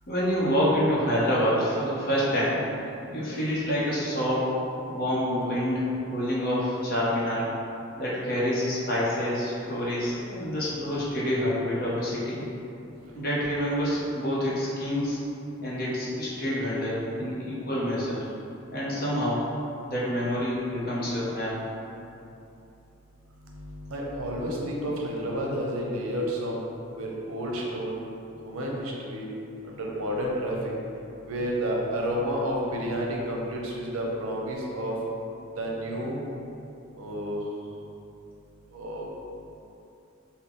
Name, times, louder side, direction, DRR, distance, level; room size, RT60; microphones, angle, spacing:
voice 1, 0.1-2.7 3.1-4.5 4.9-7.5 8.0-12.4 13.1-15.2 15.6-18.3 18.7-19.5 19.9-21.6, equal, 45° left, -7 dB, 0.7 m, -27 dB
voice 2, 23.4-26.6 27.0-28.0 28.4-29.3 29.6-30.6 31.2-35.0 35.6-36.2 37.0-37.4 38.7-39.1, equal, 80° right, -2 dB, 0.6 m, -30 dB
3.6 x 2.1 x 3.7 m, 2.8 s
head